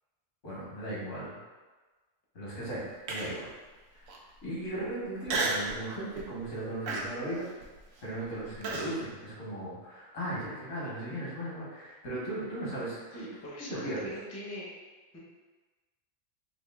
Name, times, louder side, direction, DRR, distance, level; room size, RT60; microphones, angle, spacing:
voice 1, 0.4-1.4 2.3-3.5 3.9-4.1 4.4-7.4 8.0-13.3 13.7-14.1, right 1 dB, 80° left, -6 dB, 1.6 m, -37 dB
Human voice, 3.1-3.5 4.1-4.2 5.3-5.7 6.2-6.4 6.9-8.9, right 3 dB, 80° right, 1.0 m, -33 dB
voice 2, 13.1-14.7 15.1-15.2, equal, 15° left, -5 dB, 0.5 m, -42 dB
3.5 x 2.6 x 3.4 m, 1.3 s
omnidirectional pair, 1.3 m